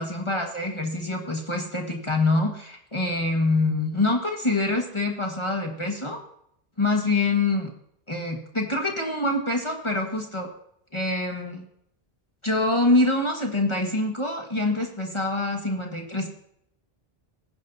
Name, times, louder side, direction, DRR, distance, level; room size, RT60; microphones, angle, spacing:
voice 1, 0.0-6.2 6.8-7.7 8.1-10.5 10.9-11.6 12.4-16.3, left 2 dB, 30° left, 1 dB, 1.6 m, -25 dB
20.5 x 10.0 x 2.8 m, 0.72 s
omnidirectional pair, 1.0 m